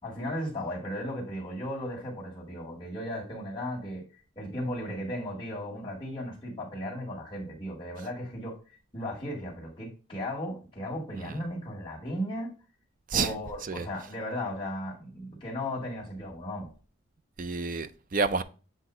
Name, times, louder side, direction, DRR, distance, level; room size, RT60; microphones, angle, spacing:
voice 1, 0.0-4.0 4.4-8.6 8.9-12.5 13.1-16.7, left 1 dB, 25° left, 2.0 m, -36 dB
voice 2, 17.4-18.4, right 4 dB, 40° right, 0.4 m, -29 dB
8.0 x 2.8 x 4.4 m
head